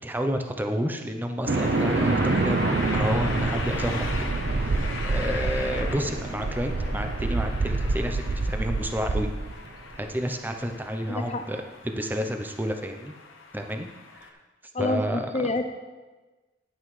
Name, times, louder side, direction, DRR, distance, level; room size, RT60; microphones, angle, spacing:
voice 1, 0.0-2.6 2.9-4.2 4.5-9.6 10.0-13.1 13.5-13.9 14.1-14.4 14.8-15.5, equal, 10° right, 5 dB, 0.6 m, -30 dB
sound 1, 1.5-14.3, left 4 dB, 75° left, 0.9 m, -40 dB
sound 2, 1.5-10.0, right 2 dB, 55° right, 0.6 m, -26 dB
voice 2, 11.1-11.4 14.7-15.6, left 2 dB, 35° left, 7 dB, 0.7 m, -28 dB
10.5 x 9.4 x 3.2 m, 1.2 s
head